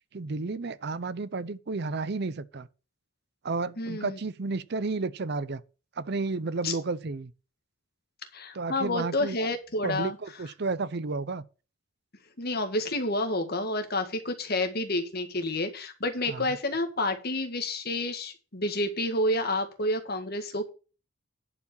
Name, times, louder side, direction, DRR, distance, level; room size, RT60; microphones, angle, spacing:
voice 1, 0.1-2.7 3.4-5.6 6.0-7.3 8.5-9.4 9.8-11.4 16.3-16.5, right 3 dB, 55° right, 0.6 m, -32 dB
voice 2, 3.8-4.2 6.6-6.7 8.3-10.1 12.4-20.7, left 1 dB, 50° left, 1.8 m, -29 dB
10.5 x 5.1 x 7.1 m
head